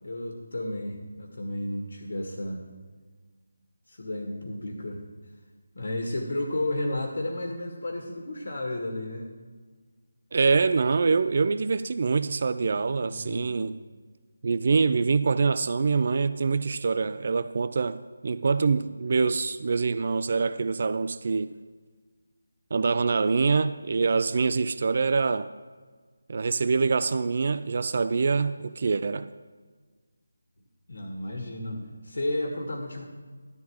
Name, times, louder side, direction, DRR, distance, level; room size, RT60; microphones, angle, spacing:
voice 1, 0.0-2.7 3.9-5.0 5.7-9.3 13.0-13.8 18.8-18.9 30.9-33.0, left 1 dB, 70° left, 2 dB, 1.7 m, -33 dB
voice 2, 10.3-13.8 14.4-21.5 22.7-25.5 26.3-29.3, right 4 dB, 50° right, 13 dB, 0.4 m, -25 dB
12.0 x 4.8 x 8.6 m, 1.4 s
figure-of-eight pair, 165°, 0 cm